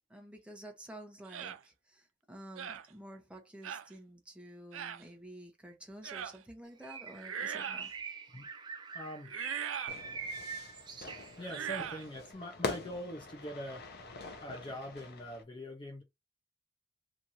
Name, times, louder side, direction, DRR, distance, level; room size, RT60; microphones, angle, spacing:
voice 1, 0.1-7.9, right 1 dB, 5° right, 0.9 m, -50 dB
sound 1, 1.3-1.6 2.6-2.9 3.6-3.9 4.7-5.0 6.0-6.4 7.1-7.9 9.2-10.0 11.4-12.1, right 8 dB, 85° right, 0.5 m, -40 dB
Bird, 6.8-11.7, right 5 dB, 20° right, 0.6 m, -43 dB
voice 2, 8.9-9.3 11.4-13.8 14.4-16.0, equal, 25° left, 0.7 m, -43 dB
Fire / Fireworks, 9.9-15.4, left 3 dB, 55° left, 0.8 m, -43 dB
3.0 x 2.6 x 4.1 m
head